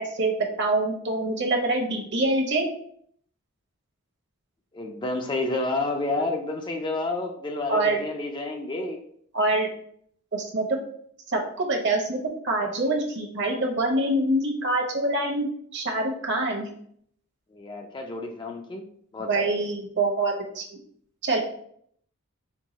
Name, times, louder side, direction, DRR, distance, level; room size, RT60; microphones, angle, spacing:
voice 1, 0.0-2.7 7.7-8.0 9.3-9.7 10.3-10.7 11.3-12.2 12.4-15.5 15.7-16.7 19.3-20.6 21.2-21.4, right 2 dB, 55° right, 1 dB, 1.0 m, -25 dB
voice 2, 4.7-9.0 17.5-18.9 19.1-19.3, left 2 dB, 20° left, 3 dB, 0.4 m, -30 dB
4.5 x 2.3 x 4.0 m, 0.65 s
head